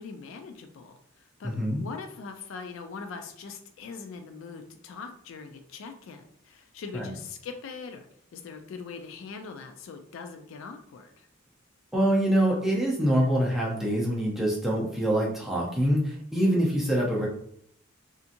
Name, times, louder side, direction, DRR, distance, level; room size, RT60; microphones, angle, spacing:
voice 1, 0.0-8.1 8.3-11.3, left 5 dB, 65° left, 6 dB, 0.3 m, -42 dB
voice 2, 1.4-1.8 6.9-7.1 11.9-17.3, right 1 dB, ahead, -4 dB, 0.6 m, -25 dB
2.7 x 2.5 x 2.5 m, 0.66 s
head